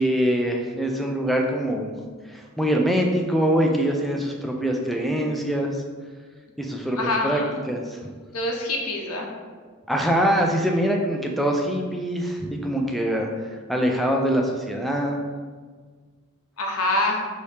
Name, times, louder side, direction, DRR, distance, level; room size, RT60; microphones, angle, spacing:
voice 1, 0.0-1.9 2.3-5.8 6.6-7.4 7.7-8.0 9.9-13.3 13.7-15.2, equal, ahead, 1 dB, 0.3 m, -23 dB
voice 2, 6.9-7.6 8.3-9.3 16.6-17.2, left 2 dB, 80° left, 1 dB, 0.7 m, -25 dB
4.7 x 2.8 x 3.2 m, 1.5 s
head